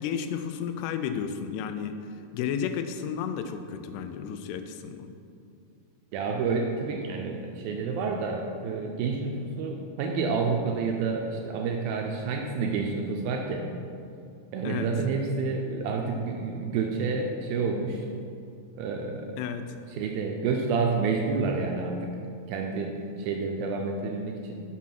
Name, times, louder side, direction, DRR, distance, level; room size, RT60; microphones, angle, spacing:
voice 1, 0.0-1.9 2.3-5.1 14.6-14.9 19.4-19.7, left 7 dB, 90° left, 8 dB, 2.7 m, -32 dB
voice 2, 6.1-13.7 14.5-18.0 18.8-19.4 19.9-22.1 22.5-22.9 23.2-24.6, right 4 dB, 80° right, 2 dB, 2.2 m, -29 dB
7.4 x 6.1 x 5.8 m, 2.4 s
omnidirectional pair, 4.7 m